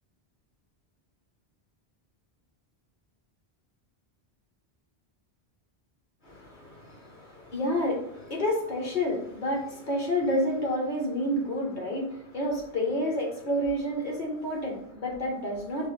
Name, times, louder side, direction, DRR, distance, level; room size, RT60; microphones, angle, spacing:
voice 1, 6.2-15.9, left 1 dB, 50° left, -1 dB, 1.1 m, -29 dB
5.2 x 2.0 x 3.1 m, 0.67 s
omnidirectional pair, 1.1 m